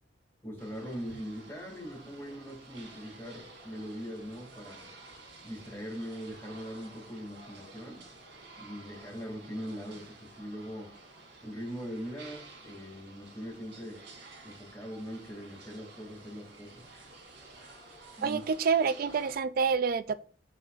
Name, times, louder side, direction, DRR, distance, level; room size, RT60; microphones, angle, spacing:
voice 1, 0.4-4.9 5.4-8.0 8.6-10.9 11.4-14.0 14.4-16.8 18.2-18.4, equal, 15° left, 2.3 m, -41 dB
sound 1, 0.6-19.4, right 2 dB, 85° right, 3.0 m, -52 dB
voice 2, 18.2-20.1, right 5 dB, 55° right, 0.4 m, -27 dB
7.7 x 6.3 x 2.5 m
head